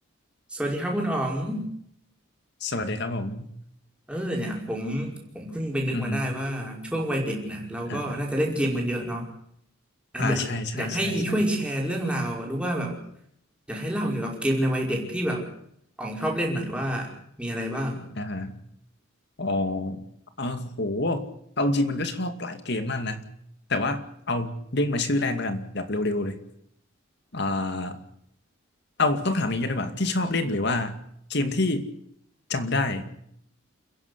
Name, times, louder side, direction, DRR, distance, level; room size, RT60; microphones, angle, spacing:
voice 1, 0.5-1.7 4.1-9.2 10.1-10.5 10.7-13.0 13.7-15.4 16.0-17.1 17.4-18.0, equal, 5° right, -1 dB, 5.4 m, -28 dB
voice 2, 2.6-3.5 5.9-6.4 7.8-8.2 10.2-11.4 18.2-18.6 19.4-20.0 20.4-21.3 21.6-23.3 23.7-26.4 27.3-28.0 29.0-31.0 31.3-31.9 32.5-33.1, left 2 dB, 55° left, 8 dB, 2.3 m, -27 dB
29.5 x 10.5 x 9.8 m, 0.72 s
head